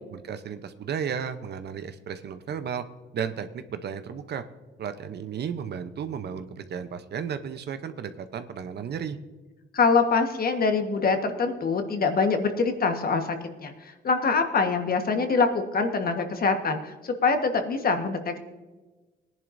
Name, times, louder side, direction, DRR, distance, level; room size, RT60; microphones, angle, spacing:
voice 1, 0.1-2.8 3.1-4.4 4.8-9.2, right 7 dB, 55° right, 10 dB, 0.8 m, -34 dB
voice 2, 9.7-18.4, left 4 dB, 50° left, 6 dB, 1.4 m, -24 dB
18.5 x 10.5 x 2.6 m, 1.2 s
cardioid pair, 90°, 20 cm